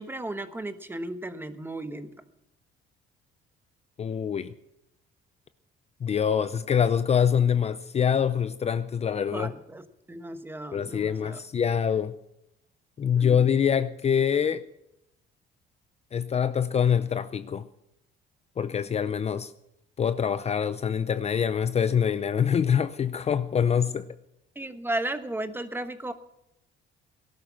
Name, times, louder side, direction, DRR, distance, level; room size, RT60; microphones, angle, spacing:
voice 1, 0.0-2.1 9.3-11.4 13.1-13.4 24.5-26.1, right 1 dB, 10° right, 1.2 m, -35 dB
voice 2, 4.0-4.5 6.0-9.5 10.7-12.1 13.0-14.6 16.1-17.7 18.6-19.5 20.0-24.1, left 8 dB, 30° left, 0.6 m, -25 dB
18.5 x 12.0 x 5.9 m
cardioid pair, 135°, 20 cm